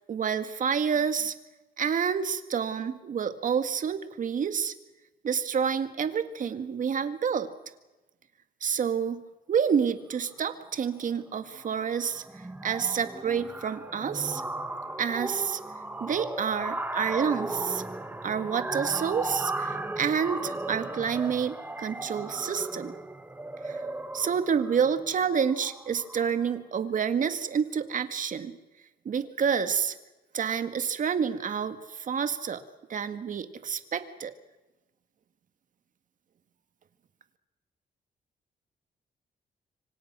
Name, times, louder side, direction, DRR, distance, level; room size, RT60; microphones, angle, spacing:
voice 1, 0.1-1.3 1.8-4.7 5.2-7.5 8.6-9.2 9.5-12.2 12.6-14.4 15.0-15.6 16.0-17.8 18.2-22.9 23.6-23.8 24.1-28.6 29.1-30.0 30.3-32.6 32.9-34.3, right 7 dB, 50° right, 10 dB, 1.9 m, -28 dB
sound 1, 10.4-10.7 11.0-11.3 11.5-26.4, right 2 dB, 10° right, 1.4 m, -36 dB
26.0 x 25.0 x 6.2 m, 1.1 s
cardioid pair, 120°, 17 cm